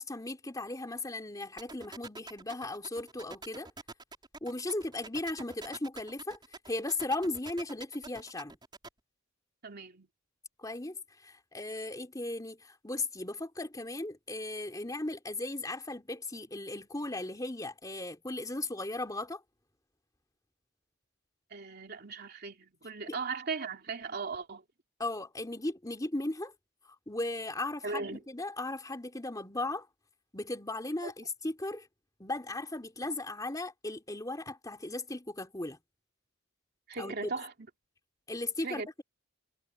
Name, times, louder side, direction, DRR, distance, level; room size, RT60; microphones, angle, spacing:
voice 1, 0.0-3.7 4.4-6.4 6.7-8.6 10.6-19.4 25.0-26.5 27.1-29.9 30.3-31.9 32.2-35.8 37.0-37.3 38.3-39.0, left 2 dB, 15° left, 3.2 m, -37 dB
sound 1, 1.6-8.9, right 3 dB, 20° right, 4.7 m, -46 dB
voice 2, 9.6-10.1 21.5-24.6 27.8-28.2 31.0-31.1 36.9-37.5 38.6-39.0, right 4 dB, 50° right, 2.8 m, -38 dB
head